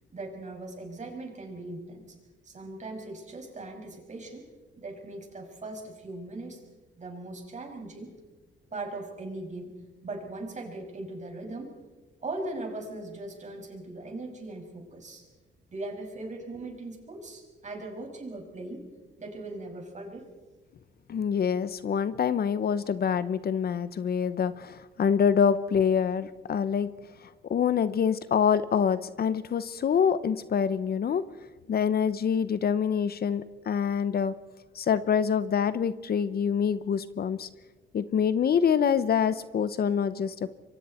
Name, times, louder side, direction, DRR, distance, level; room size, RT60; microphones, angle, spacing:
voice 1, 0.1-2.2 2.4-4.4 4.8-6.6 7.0-8.1 8.7-9.7 10.0-11.7 12.2-15.2 15.7-18.8 19.2-20.3, right 2 dB, 35° right, 2 dB, 6.4 m, -39 dB
voice 2, 21.1-26.9 27.5-31.2 31.7-34.3 34.7-37.5 37.9-40.5, left 7 dB, 50° left, 14 dB, 1.0 m, -26 dB
27.0 x 24.0 x 4.5 m, 1.2 s
cardioid pair, 90°, 20 cm